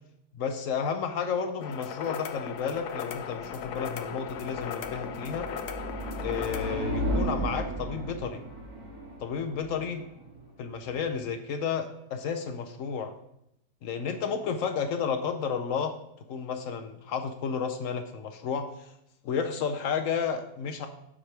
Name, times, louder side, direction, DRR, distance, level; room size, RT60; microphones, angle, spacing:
voice 1, 0.3-5.5 6.2-8.4 9.2-10.0 10.6-13.1 13.8-16.0 16.3-18.9 19.2-20.9, left 6 dB, 65° left, 6 dB, 0.8 m, -32 dB
sound 1, 1.6-6.8, left 8 dB, 85° left, 1.2 m, -37 dB
sound 2, 2.4-11.4, right 1 dB, 65° right, 2.1 m, -36 dB
7.4 x 3.3 x 5.7 m, 0.78 s
omnidirectional pair, 1.7 m